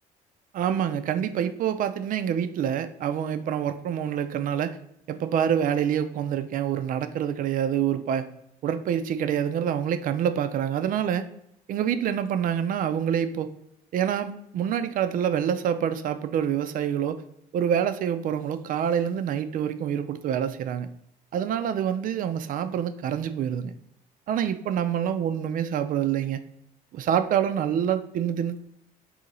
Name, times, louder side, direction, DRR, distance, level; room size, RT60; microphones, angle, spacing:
voice 1, 0.5-4.8 5.1-8.2 8.6-11.2 11.7-13.5 13.9-17.2 17.5-20.9 21.3-23.7 24.3-26.4 26.9-28.6, right 9 dB, 55° right, 10 dB, 0.4 m, -26 dB
3.8 x 2.8 x 4.1 m, 0.75 s
cardioid pair, 110°, 17 cm